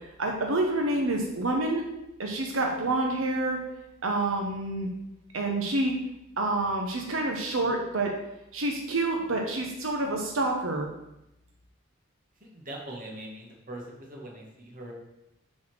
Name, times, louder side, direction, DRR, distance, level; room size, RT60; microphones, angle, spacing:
voice 1, 0.2-1.8 2.2-3.6 4.0-4.9 5.3-5.9 6.4-8.1 8.5-10.9, right 2 dB, 90° right, 1 dB, 1.0 m, -28 dB
voice 2, 12.4-14.9, right 1 dB, 45° right, -1 dB, 1.9 m, -42 dB
7.4 x 4.3 x 6.2 m, 0.87 s
head